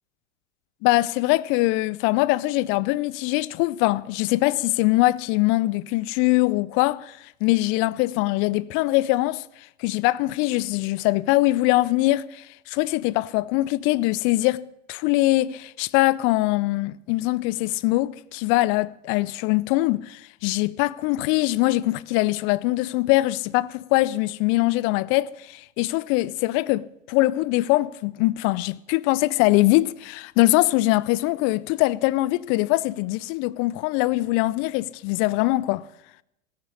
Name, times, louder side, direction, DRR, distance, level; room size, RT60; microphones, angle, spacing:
voice 1, 0.8-9.4 9.8-35.8, left 19 dB, 35° left, 0.5 m, -22 dB
16.5 x 9.6 x 6.5 m
hypercardioid pair, 100°, 38 cm